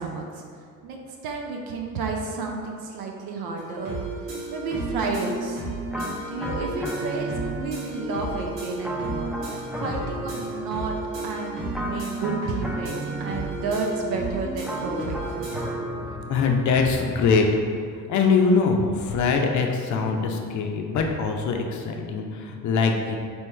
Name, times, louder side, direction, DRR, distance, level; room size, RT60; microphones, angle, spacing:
voice 1, 0.0-5.6 6.0-11.0 11.2-15.6, right 3 dB, 55° right, 1 dB, 0.7 m, -32 dB
sound 1, 3.6-15.8, right 2 dB, 80° right, 1.3 m, -33 dB
sound 2, 5.9-8.0 8.8-11.2 11.7-13.8 14.6-17.0, right 1 dB, ahead, 0.5 m, -35 dB
voice 2, 16.3-17.5 18.1-23.2, left 4 dB, 40° left, 3 dB, 0.6 m, -22 dB
4.3 x 3.1 x 3.1 m, 2.2 s
hypercardioid pair, 60°, 45 cm